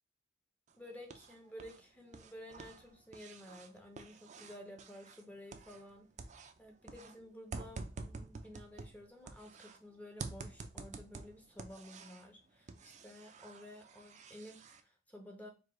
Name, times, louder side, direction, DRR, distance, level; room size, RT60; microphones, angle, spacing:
sound 1, 0.7-1.8 2.1-5.9 6.2-9.8 10.2-12.3 12.7-14.8, right 3 dB, 40° right, 0.4 m, -49 dB
voice 1, 0.8-6.1 6.3-15.5, equal, 10° left, 3 dB, 0.6 m, -53 dB
4.6 x 2.2 x 3.8 m, 0.32 s
head